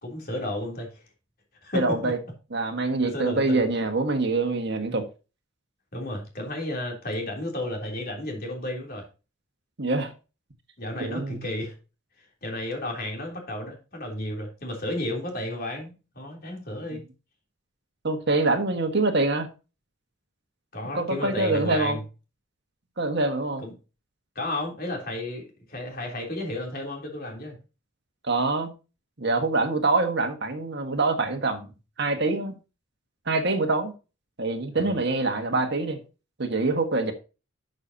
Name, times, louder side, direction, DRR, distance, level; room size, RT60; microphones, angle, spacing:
voice 1, 0.0-1.0 1.6-2.1 3.0-3.6 5.9-9.0 10.8-11.7 12.4-17.0 20.7-22.0 23.6-23.7 24.4-27.6 34.7-35.0, left 1 dB, 45° left, 3.3 m, -33 dB
voice 2, 1.7-2.2 2.5-5.1 9.8-10.1 11.0-11.4 18.0-19.5 20.9-22.0 23.0-23.6 28.3-28.7 29.2-31.7 32.0-32.5 33.3-33.9 34.4-36.0 36.4-37.1, right 3 dB, 55° right, 1.5 m, -25 dB
12.0 x 6.7 x 2.8 m
head